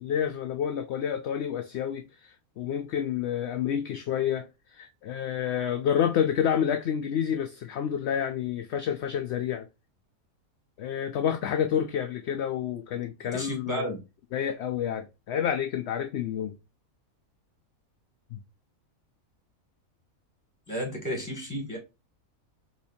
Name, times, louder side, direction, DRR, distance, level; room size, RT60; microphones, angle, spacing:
voice 1, 0.0-4.5 4.7-9.7 10.8-13.9 14.3-16.6 18.3-18.4, left 9 dB, 65° left, 0.7 m, -29 dB
voice 2, 13.3-14.0 20.7-21.8, equal, 10° left, 2.1 m, -32 dB
4.3 x 4.1 x 2.7 m
omnidirectional pair, 1.5 m